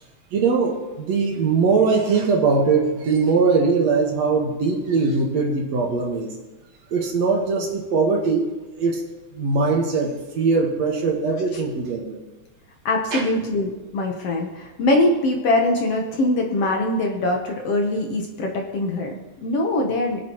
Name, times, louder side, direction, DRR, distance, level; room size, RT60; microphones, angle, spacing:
voice 1, 0.3-6.3 6.9-8.5 8.7-9.0 9.3-12.2 13.1-13.3, right 4 dB, 65° right, 1 dB, 2.5 m, -21 dB
voice 2, 12.9-20.2, left 2 dB, 60° left, 2 dB, 1.9 m, -22 dB
25.0 x 8.6 x 3.0 m, 1.1 s
omnidirectional pair, 3.5 m